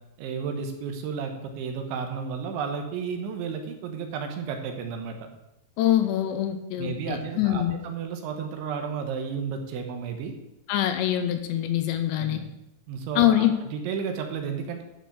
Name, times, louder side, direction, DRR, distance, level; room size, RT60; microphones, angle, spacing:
voice 1, 0.2-5.2 6.8-10.3 12.1-12.5 12.9-14.8, right 6 dB, 80° right, 4 dB, 3.5 m, -32 dB
voice 2, 5.8-7.8 10.7-12.4 13.2-13.5, left 12 dB, 80° left, 7 dB, 2.8 m, -24 dB
11.5 x 6.1 x 6.7 m, 0.91 s
omnidirectional pair, 5.4 m